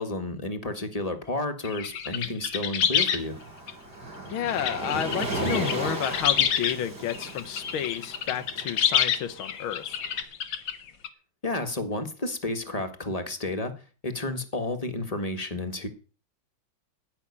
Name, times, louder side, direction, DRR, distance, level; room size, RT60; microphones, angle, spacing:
voice 1, 0.0-3.4 11.4-13.7 14.0-15.9, left 2 dB, 20° left, 7 dB, 1.6 m, -31 dB
sound 1, 1.6-3.2 3.7-3.8 4.4-6.8 7.1-11.1, left 8 dB, 70° left, 1.9 m, -28 dB
Waves surf, 3.0-10.1, right 2 dB, 55° right, 4.1 m, -35 dB
voice 2, 4.3-9.9, left 10 dB, 85° left, 11 dB, 1.9 m, -31 dB
15.0 x 6.0 x 9.8 m, 0.39 s
omnidirectional pair, 2.2 m